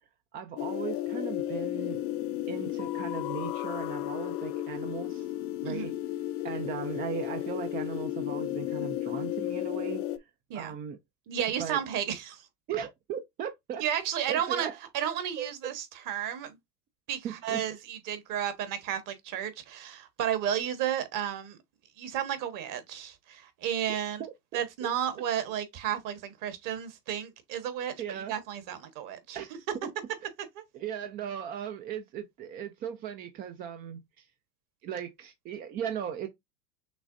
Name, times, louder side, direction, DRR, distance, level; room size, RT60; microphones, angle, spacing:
voice 1, 0.3-2.0 2.5-5.3 5.6-5.9 6.4-10.3 10.5-11.0 11.6-11.8 12.7-13.8 14.3-14.8 15.4-15.5 17.2-17.7 24.2-24.9 28.0-28.3 29.3-29.5 30.7-34.3 34.8-36.3, right 8 dB, 20° right, 0.3 m, -37 dB
sound 1, 0.6-10.2, left 14 dB, 50° left, 0.6 m, -33 dB
voice 2, 11.3-12.5 13.8-14.7 14.9-16.6 17.1-21.6 22.0-24.2 24.5-29.4, right 10 dB, 45° right, 1.3 m, -32 dB
6.2 x 3.1 x 2.5 m
hypercardioid pair, 115°, 46 cm